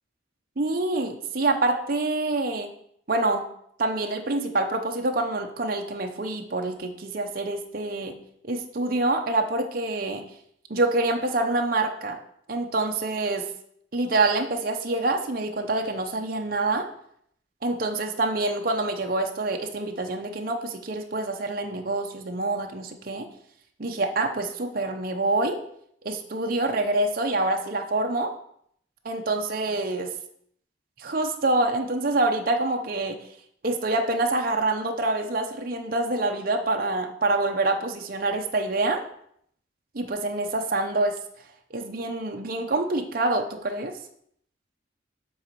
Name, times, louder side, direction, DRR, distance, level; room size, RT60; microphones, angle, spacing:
voice 1, 0.6-2.7 3.1-3.4 3.8-8.2 8.4-10.2 10.7-12.2 12.5-13.5 13.9-16.9 17.6-23.3 23.8-25.6 26.0-28.3 29.0-30.1 31.0-33.2 33.6-39.0 39.9-41.2 41.7-43.9, right 2 dB, 50° right, 3 dB, 0.8 m, -26 dB
7.9 x 4.1 x 6.8 m, 0.68 s
head